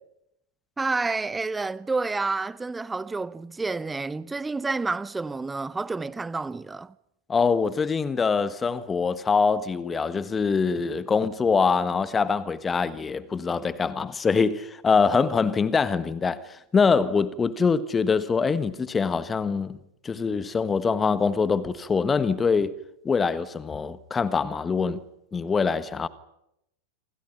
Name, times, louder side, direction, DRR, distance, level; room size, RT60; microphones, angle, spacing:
voice 1, 0.8-6.9, right 3 dB, 10° right, 0.8 m, -29 dB
voice 2, 7.3-19.8 20.0-22.8 23.0-25.0 25.3-26.1, left 5 dB, 15° left, 1.3 m, -24 dB
27.5 x 26.5 x 5.8 m
figure-of-eight pair, 90°, 0 cm